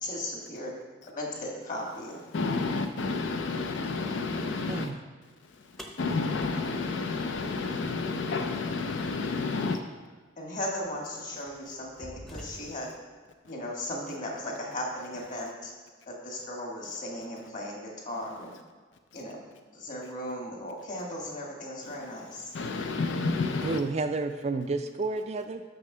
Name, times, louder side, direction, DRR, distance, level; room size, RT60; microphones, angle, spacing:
voice 1, 0.0-0.7 1.1-2.2 10.4-12.9 13.5-15.7 16.1-17.8 18.0-18.5 19.1-19.4 19.7-22.5, left 1 dB, 40° left, -1 dB, 1.7 m, -36 dB
voice 2, 2.3-4.9 5.5-9.8 19.1-19.2 22.5-23.8, left 3 dB, 70° left, 6 dB, 0.5 m, -30 dB
sound 1, 5.8-8.0 9.8-9.9 10.8-11.0 11.5-13.0, equal, ahead, 0.7 m, -47 dB
voice 3, 23.6-25.6, right 3 dB, 35° right, 8 dB, 0.3 m, -30 dB
6.7 x 5.6 x 6.6 m, 1.4 s
head